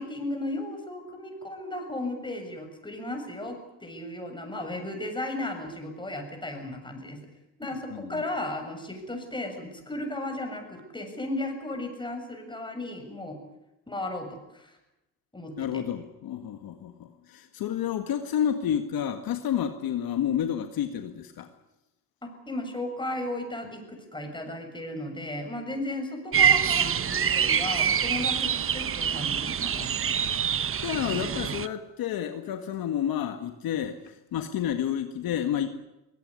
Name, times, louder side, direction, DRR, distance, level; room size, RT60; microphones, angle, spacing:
voice 1, 0.0-7.2 7.6-13.4 13.9-14.8 15.3-15.8 22.2-29.9, left 1 dB, 10° left, 4 dB, 7.2 m, -35 dB
voice 2, 7.7-8.2 15.6-21.5 30.1-35.7, left 9 dB, 65° left, 7 dB, 1.8 m, -30 dB
sound 1, 26.3-31.7, right 8 dB, 35° right, 1.1 m, -25 dB
22.5 x 17.5 x 9.9 m, 0.92 s
cardioid pair, 95°, 39 cm